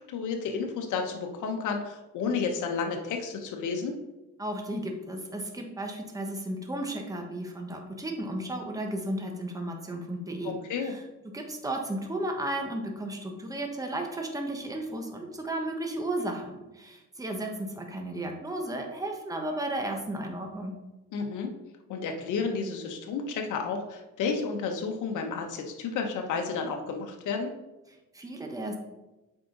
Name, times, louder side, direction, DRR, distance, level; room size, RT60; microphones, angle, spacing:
voice 1, 0.1-3.9 10.4-10.9 21.1-21.5 21.9-27.5, left 5 dB, 80° left, 3 dB, 1.1 m, -31 dB
voice 2, 4.4-10.5 10.8-11.0 11.3-20.7 27.9-28.8, right 1 dB, 10° right, 2 dB, 1.3 m, -34 dB
7.6 x 4.9 x 3.9 m, 1.0 s
cardioid pair, 90°, 30 cm